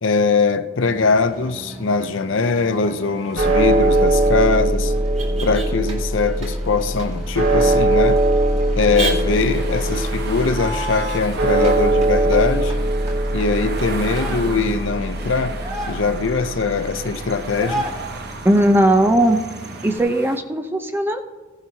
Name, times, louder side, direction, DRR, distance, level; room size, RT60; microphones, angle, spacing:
voice 1, 0.0-4.9 5.4-8.2 8.8-12.7 13.3-15.5 15.9-17.9, left 4 dB, 65° left, 0.6 m, -21 dB
Motor vehicle (road), 0.8-20.0, right 1 dB, 30° right, 2.6 m, -34 dB
sound 1, 3.4-17.6, right 2 dB, 70° right, 2.8 m, -21 dB
sound 2, 8.7-20.4, right 3 dB, 50° right, 0.9 m, -36 dB
voice 2, 18.4-19.4 19.8-21.2, right 1 dB, 10° right, 0.6 m, -17 dB
16.0 x 10.5 x 2.8 m
head